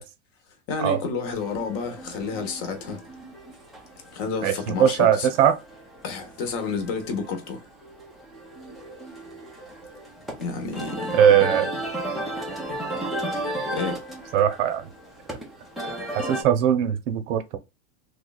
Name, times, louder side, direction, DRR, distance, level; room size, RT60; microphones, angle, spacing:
voice 1, 0.7-3.0 4.1-5.3 6.0-7.6 10.4-11.2 13.7-14.0, left 5 dB, 40° left, 0.9 m, -30 dB
sound 1, 1.3-16.4, right 1 dB, ahead, 0.4 m, -35 dB
voice 2, 4.8-5.6 11.1-11.7 14.3-14.8 16.3-17.6, right 9 dB, 90° right, 0.8 m, -20 dB
3.2 x 2.4 x 3.9 m
supercardioid pair, 175°, 36 cm